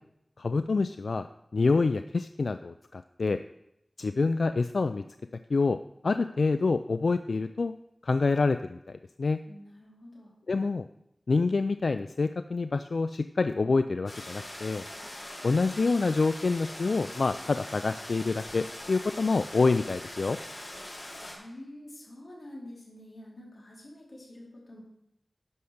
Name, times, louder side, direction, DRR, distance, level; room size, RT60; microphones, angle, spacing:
voice 1, 0.4-1.3 1.5-3.4 4.0-5.0 5.5-5.8 6.0-7.7 8.0-9.4 10.5-10.9 11.3-14.9 15.4-20.4, left 3 dB, 85° left, 10 dB, 0.3 m, -27 dB
voice 2, 9.5-10.3 21.2-24.8, left 1 dB, 65° left, -4 dB, 4.1 m, -47 dB
sound 1, 14.1-21.3, left 1 dB, 45° left, 4.6 m, -42 dB
11.0 x 5.8 x 6.5 m, 0.82 s
wide cardioid pair, 55°, 0 cm